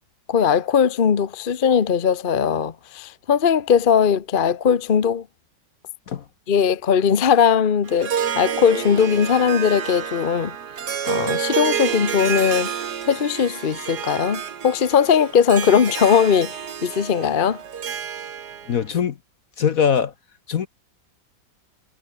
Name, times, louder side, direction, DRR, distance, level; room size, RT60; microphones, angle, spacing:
voice 1, 0.3-5.3 6.5-10.5 11.1-12.7 13.1-17.6, left 7 dB, 35° left, 0.9 m, -19 dB
Harp, 7.9-18.8, right 8 dB, 60° right, 1.9 m, -29 dB
voice 2, 18.7-19.2 19.6-20.1 20.5-20.7, left 7 dB, 55° left, 1.2 m, -21 dB
omnidirectional pair, 2.1 m